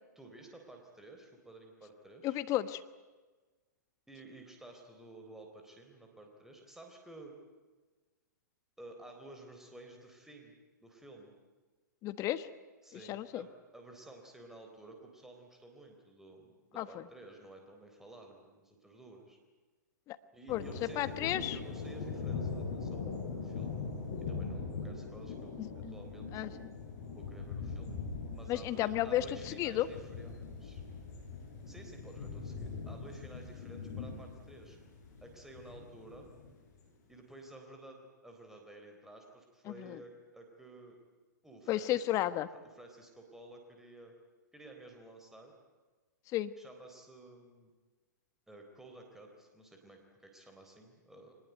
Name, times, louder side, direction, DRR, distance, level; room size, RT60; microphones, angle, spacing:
voice 1, 0.2-2.4 4.1-7.3 8.8-11.3 12.8-19.4 20.3-23.8 24.3-26.5 27.1-27.9 28.3-30.8 31.7-34.8 35.2-36.3 37.1-41.0 41.4-42.1 42.7-44.1 44.5-45.5 46.6-47.7 48.5-51.4, right 2 dB, 5° right, 2 dB, 3.8 m, -53 dB
voice 2, 2.2-2.8 12.0-12.5 13.1-13.4 16.8-17.0 20.1-20.2 20.5-20.6 20.9-21.6 25.6-26.0 26.3-26.7 28.5-29.9 39.7-40.0 41.7-42.5 46.3-46.5, left 13 dB, 35° left, 13 dB, 1.3 m, -33 dB
sound 1, 20.5-36.6, left 4 dB, 55° left, 7.9 m, -41 dB
23.5 x 20.5 x 9.3 m, 1.3 s
hypercardioid pair, 115°, 10 cm